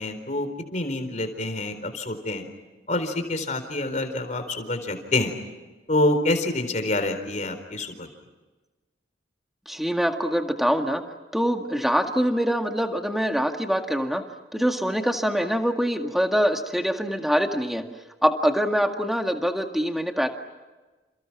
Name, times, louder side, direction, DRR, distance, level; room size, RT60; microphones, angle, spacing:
voice 1, 0.0-2.5 2.9-5.4 5.9-8.1, left 2 dB, 40° left, 8 dB, 4.2 m, -27 dB
voice 2, 9.7-11.0 11.3-14.2 14.5-17.8 18.2-20.3, equal, ahead, 4 dB, 1.9 m, -24 dB
29.5 x 29.5 x 6.1 m, 1.2 s
head